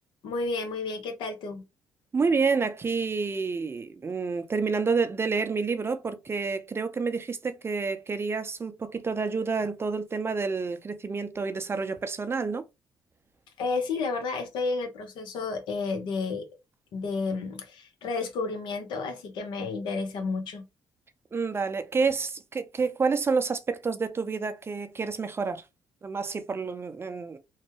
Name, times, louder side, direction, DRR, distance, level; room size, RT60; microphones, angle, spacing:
voice 1, 0.2-1.6 13.6-16.5 16.9-20.6, left 4 dB, 75° left, 0.9 m, -31 dB
voice 2, 2.1-12.6 21.3-25.6 26.0-27.4, right 4 dB, 30° right, 0.5 m, -29 dB
3.1 x 2.2 x 3.0 m
supercardioid pair, 70°, 8 cm